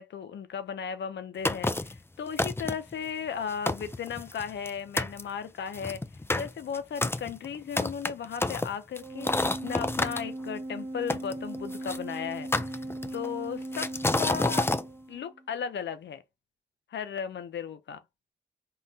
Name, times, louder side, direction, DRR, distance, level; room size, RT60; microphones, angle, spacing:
voice 1, 0.0-6.0 6.4-12.5 13.1-14.7 15.1-16.2 16.9-18.0, left 7 dB, 80° left, 0.5 m, -36 dB
sound 1, 1.5-2.0 2.4-2.9 3.4-3.5 3.7-4.7 5.0-5.2 5.7-10.2 11.1-12.0 12.5-13.3 13.7-14.8, left 2 dB, 15° left, 0.4 m, -29 dB
Organ, 9.0-15.5, right 1 dB, 15° right, 0.8 m, -38 dB
3.7 x 2.1 x 2.6 m
cardioid pair, 40°, 19 cm